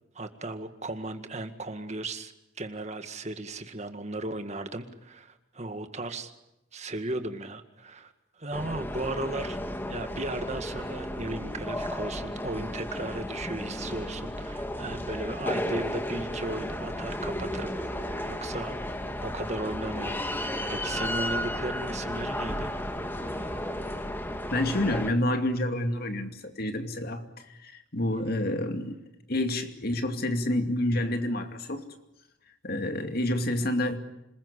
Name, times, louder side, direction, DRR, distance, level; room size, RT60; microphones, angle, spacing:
voice 1, 0.2-2.3 2.6-6.3 6.7-9.6 9.9-18.8 19.2-22.7 23.3-23.5, right 2 dB, 35° right, 1.9 m, -36 dB
sound 1, 8.5-25.1, left 1 dB, 10° left, 1.8 m, -33 dB
voice 2, 24.5-28.9 29.3-31.8 32.6-34.0, left 1 dB, 55° left, 2.5 m, -28 dB
27.0 x 21.0 x 9.9 m
head